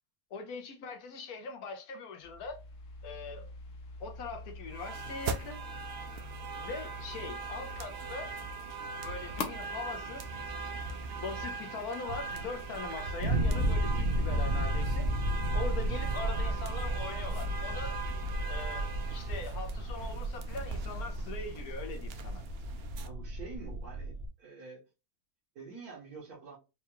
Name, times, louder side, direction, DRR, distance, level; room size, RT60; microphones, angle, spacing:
voice 1, 0.3-2.6 3.0-3.5 4.0-5.6 6.6-8.3 9.0-10.3 11.2-15.1 15.5-18.0 18.5-22.4, left 4 dB, 85° left, 1.3 m, -41 dB
sound 1, 2.2-11.4, left 2 dB, 65° left, 1.0 m, -45 dB
sound 2, 4.7-23.1, right 4 dB, 70° right, 0.6 m, -41 dB
sound 3, 12.1-24.3, right 1 dB, 55° right, 1.3 m, -33 dB
voice 2, 23.0-24.8 25.5-26.6, right 4 dB, 85° right, 1.7 m, -47 dB
4.6 x 2.3 x 3.0 m
omnidirectional pair, 1.5 m